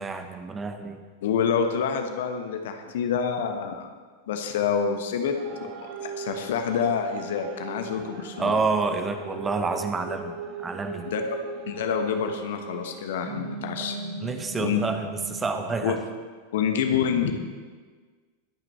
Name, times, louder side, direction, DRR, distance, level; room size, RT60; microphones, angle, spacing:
voice 1, 0.0-1.0 8.4-10.3 10.6-11.1 14.2-16.0, right 4 dB, 15° right, 7 dB, 1.0 m, -28 dB
voice 2, 1.2-3.9 4.3-5.3 5.6-5.7 6.0-8.5 11.1-11.4 11.7-14.0 14.6-14.8 15.8-16.0 16.5-17.3, left 7 dB, 55° left, 5 dB, 1.3 m, -27 dB
sound 1, 5.3-16.0, right 4 dB, 40° right, 1.7 m, -39 dB
22.0 x 9.0 x 3.3 m, 1.5 s
figure-of-eight pair, 90°, 0 cm